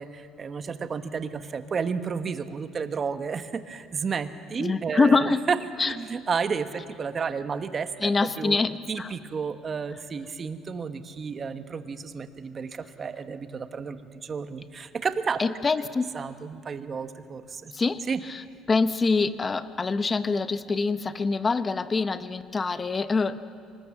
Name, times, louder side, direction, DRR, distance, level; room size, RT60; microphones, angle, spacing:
voice 1, 0.0-5.6 5.9-15.4 16.1-17.7 18.1-18.2, right 5 dB, 35° right, 9 dB, 1.2 m, -32 dB
voice 2, 4.6-5.4 5.8-5.9 8.0-9.1 15.4-16.0 17.7-23.4, left 4 dB, 25° left, 12 dB, 0.9 m, -25 dB
25.0 x 19.5 x 7.3 m, 2.3 s
cardioid pair, 110°, 0 cm